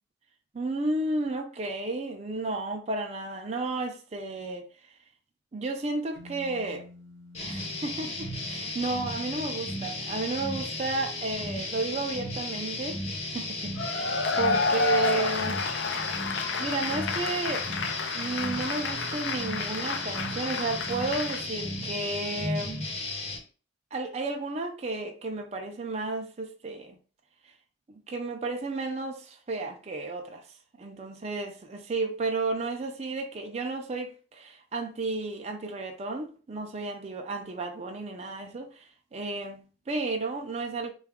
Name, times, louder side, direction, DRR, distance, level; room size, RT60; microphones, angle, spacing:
voice 1, 0.5-4.7 5.5-6.9 7.4-13.0 13.3-15.6 16.6-17.7 18.1-22.7 23.9-27.0 27.9-30.5 30.8-40.9, right 2 dB, 35° right, 0.4 m, -33 dB
sound 1, 6.1-10.0, left 2 dB, 75° right, 0.7 m, -51 dB
sound 2, 7.3-23.4, left 2 dB, 35° left, 0.8 m, -35 dB
Cheering / Applause / Crowd, 13.8-21.4, left 3 dB, 70° left, 0.4 m, -30 dB
3.7 x 2.3 x 3.4 m
head